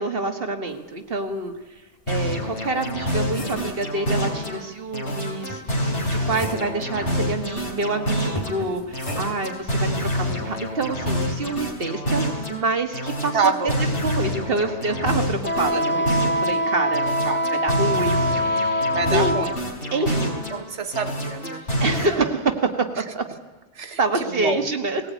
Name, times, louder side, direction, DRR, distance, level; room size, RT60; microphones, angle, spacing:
voice 1, 0.0-1.5 2.1-5.8 6.1-13.5 14.0-17.1 17.6-19.3 19.9-20.4 21.8-23.3 24.0-25.0, right 3 dB, 55° right, 6 dB, 1.8 m, -27 dB
sound 1, 1.5-1.6 2.2-3.8 5.5-6.8 8.4-9.6 11.1-11.3, equal, 30° left, 2.5 m, -35 dB
sound 2, 2.1-4.6 4.9-8.6 8.9-12.6 12.9-16.6 16.9-20.6 20.9-22.1, equal, 80° left, 3.9 m, -27 dB
voice 2, 6.5-6.8 7.0-7.4 13.3-13.9 15.7-15.9 17.2-17.5 18.9-19.6 20.0-20.1 20.5-21.7 23.7-24.7, right 5 dB, 85° right, 6 dB, 1.7 m, -28 dB
Wind instrument woodwind instrument, 15.4-19.6, equal, 10° left, 0.6 m, -24 dB
18.5 x 18.0 x 9.2 m, 1.2 s
omnidirectional pair, 1.2 m